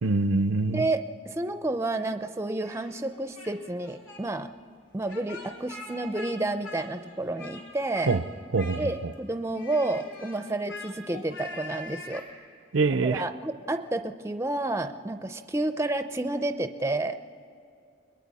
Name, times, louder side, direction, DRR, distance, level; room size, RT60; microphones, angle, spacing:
voice 1, 0.0-0.9 8.1-8.2 8.5-9.1 12.7-13.3, right 3 dB, 85° right, 14 dB, 0.6 m, -25 dB
voice 2, 0.7-4.5 4.9-8.2 8.8-12.2 13.0-17.2, right 2 dB, 15° right, 9 dB, 0.5 m, -30 dB
Speech, 2.6-3.6 3.8-4.2 5.0-6.3 6.6-7.6 7.9-8.2 8.5-9.1 9.5-12.3, left 2 dB, 80° left, 3.2 m, -43 dB
29.5 x 21.0 x 4.2 m, 2.5 s
head